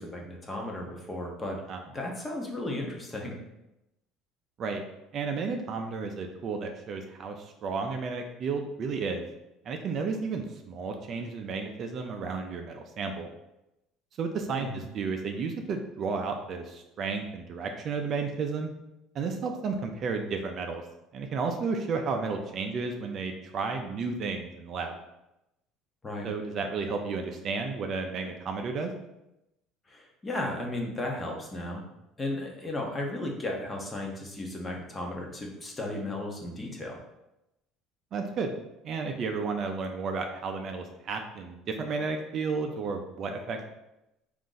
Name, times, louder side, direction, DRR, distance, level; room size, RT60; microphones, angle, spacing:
voice 1, 0.0-1.6 1.9-3.4 14.6-14.8 26.0-26.3 29.9-31.8 32.2-37.0, left 1 dB, 15° left, 0 dB, 0.7 m, -35 dB
voice 2, 5.1-9.2 9.6-13.3 14.2-18.7 19.1-20.8 21.1-25.0 26.2-28.9 38.1-38.5 38.8-43.6, right 4 dB, 40° right, 4 dB, 0.4 m, -32 dB
3.8 x 2.5 x 3.8 m, 0.91 s
cardioid pair, 135°, 0 cm